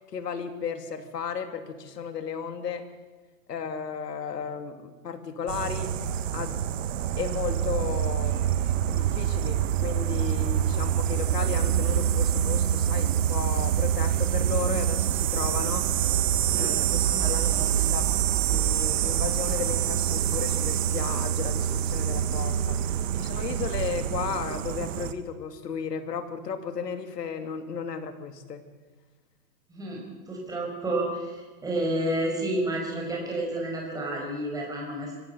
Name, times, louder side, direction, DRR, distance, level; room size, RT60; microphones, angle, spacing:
voice 1, 0.1-2.9 3.5-5.9 6.3-6.6 7.2-16.0 16.6-17.6 17.9-22.8 23.1-28.6, left 6 dB, 80° left, 8 dB, 2.9 m, -34 dB
sound 1, 5.5-25.1, right 10 dB, 50° right, 1.4 m, -26 dB
voice 2, 16.5-17.9 29.7-30.0 30.3-35.2, right 1 dB, 5° right, -2 dB, 5.3 m, -31 dB
25.5 x 16.0 x 6.9 m, 1.3 s
hypercardioid pair, 145°, 48 cm